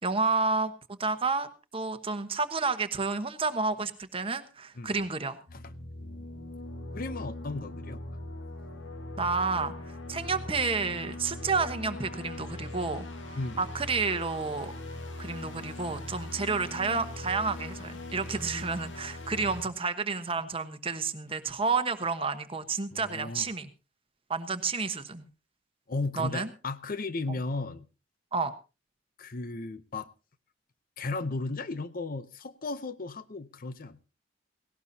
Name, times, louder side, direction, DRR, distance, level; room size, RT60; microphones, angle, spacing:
voice 1, 0.0-1.5 1.7-5.4 9.2-9.7 10.1-13.1 13.6-14.7 15.2-23.7 24.3-25.2 26.2-26.5 28.3-28.5, right 4 dB, 30° right, 9 dB, 1.1 m, -30 dB
sound 1, 5.5-19.6, left 1 dB, 80° left, 2.2 m, -40 dB
voice 2, 6.9-8.0 13.4-13.7 22.9-23.5 25.9-27.9 29.2-30.1 31.0-34.0, left 3 dB, 50° left, 14 dB, 0.7 m, -35 dB
17.5 x 17.5 x 2.8 m, 0.31 s
head